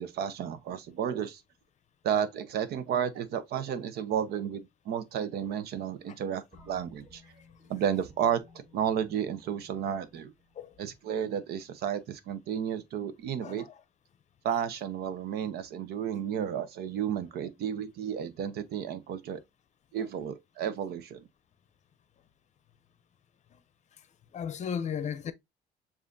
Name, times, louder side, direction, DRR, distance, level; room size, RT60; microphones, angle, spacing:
voice 1, 0.0-1.4 2.0-7.2 7.7-8.4 8.7-10.3 10.8-13.6 14.4-19.4 19.9-21.2, right 8 dB, 70° right, 0.8 m, -32 dB
sound 1, 6.5-11.2, left 2 dB, 20° right, 2.7 m, -58 dB
voice 2, 13.4-13.8 20.0-20.1 23.5-23.6 24.3-25.3, left 7 dB, 45° left, 0.6 m, -35 dB
7.2 x 2.5 x 2.6 m
cardioid pair, 110°, 17 cm